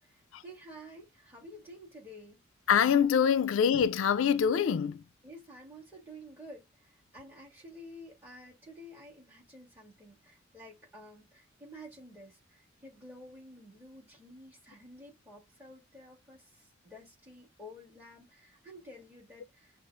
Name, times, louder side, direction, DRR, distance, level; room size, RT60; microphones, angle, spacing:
voice 1, 0.1-2.4 5.2-16.5 16.8-19.7, equal, 10° right, 2.4 m, -51 dB
voice 2, 2.7-5.0, left 7 dB, 85° left, 0.4 m, -25 dB
6.0 x 2.4 x 2.3 m
head